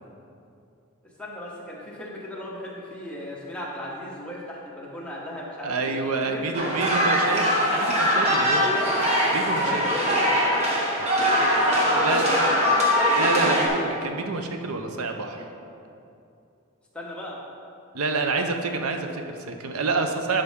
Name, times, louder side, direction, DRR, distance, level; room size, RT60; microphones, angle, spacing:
voice 1, 1.2-7.1 8.4-9.1 9.7-10.3 10.7-13.1 13.6-13.9 16.9-17.4 18.2-18.4, left 1 dB, 5° left, -5 dB, 1.1 m, -35 dB
voice 2, 5.6-7.4 7.7-8.7 9.3-9.8 12.0-12.3 13.2-15.5 17.9-20.4, right 4 dB, 85° right, 5 dB, 0.6 m, -28 dB
sound 1, 6.5-13.7, equal, 30° right, 1.3 m, -22 dB
11.0 x 5.3 x 3.6 m, 2.7 s
head